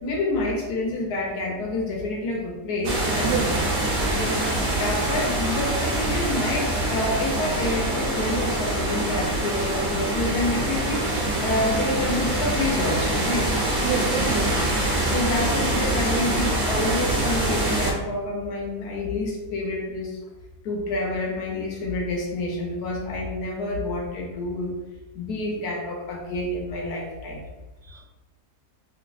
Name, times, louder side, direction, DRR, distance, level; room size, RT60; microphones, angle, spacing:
voice 1, 0.0-3.6 4.1-4.4 4.7-13.5 15.0-20.2 20.6-24.8 25.1-27.4, left 2 dB, 80° left, -1 dB, 1.3 m, -28 dB
sound 1, 2.8-17.9, right 1 dB, 50° right, 0.7 m, -24 dB
voice 2, 3.2-3.6 13.8-14.8 27.9-28.0, right 6 dB, 70° right, 0 dB, 1.0 m, -28 dB
3.1 x 2.3 x 3.9 m, 1.1 s
omnidirectional pair, 1.7 m